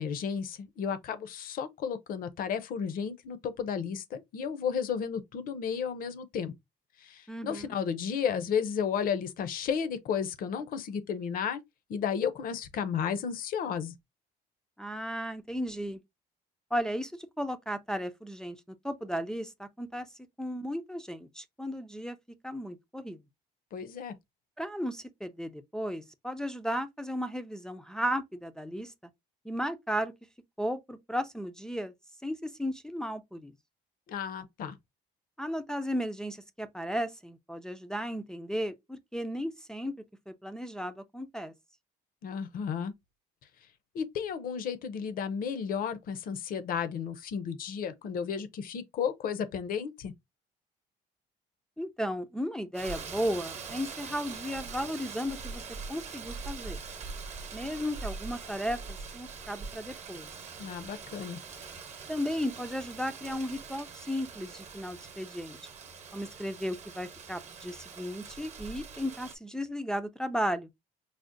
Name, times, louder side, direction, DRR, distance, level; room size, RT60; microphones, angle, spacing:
voice 1, 0.0-6.5 7.0-11.6 11.9-13.9 23.7-24.1 34.1-34.8 42.2-42.9 43.9-50.1 60.6-61.4, left 7 dB, 60° left, 0.6 m, -33 dB
voice 2, 7.3-7.8 14.8-16.0 16.7-20.1 20.4-22.2 22.4-23.2 24.6-28.9 29.4-30.1 30.6-31.9 32.2-33.5 35.4-39.9 40.3-41.5 51.8-56.8 57.5-60.3 62.1-65.6 66.1-70.7, equal, 5° left, 0.4 m, -35 dB
Rain, 52.7-69.4, right 5 dB, 40° right, 0.8 m, -43 dB
4.8 x 2.0 x 2.5 m
cardioid pair, 110°, 17 cm